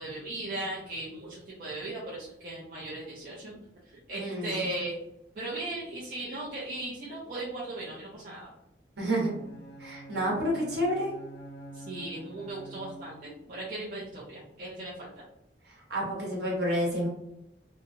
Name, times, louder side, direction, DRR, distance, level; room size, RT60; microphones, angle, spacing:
voice 1, 0.0-3.6 4.1-4.9 5.4-8.5 11.7-15.2, right 2 dB, 50° right, -7 dB, 0.6 m, -37 dB
voice 2, 4.2-4.6 9.0-9.3 9.8-11.1 15.9-17.1, equal, 65° right, -3 dB, 1.1 m, -29 dB
Bowed string instrument, 9.2-13.4, right 1 dB, 60° left, 0.5 m, -47 dB
2.8 x 2.3 x 2.6 m, 0.83 s
head